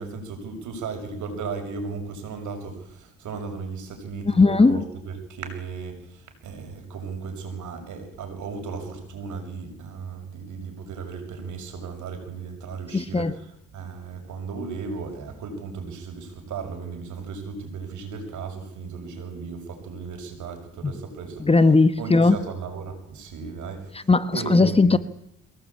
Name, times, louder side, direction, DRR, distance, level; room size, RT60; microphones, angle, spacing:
voice 1, 0.0-13.3 13.7-21.5 22.0-24.9, right 5 dB, 75° right, 5 dB, 6.5 m, -35 dB
voice 2, 4.2-4.8 12.9-13.3 20.8-20.9 21.4-22.4 23.9-25.0, left 3 dB, 20° left, 13 dB, 1.3 m, -18 dB
23.5 x 18.0 x 8.7 m, 0.75 s
cardioid pair, 90°, 30 cm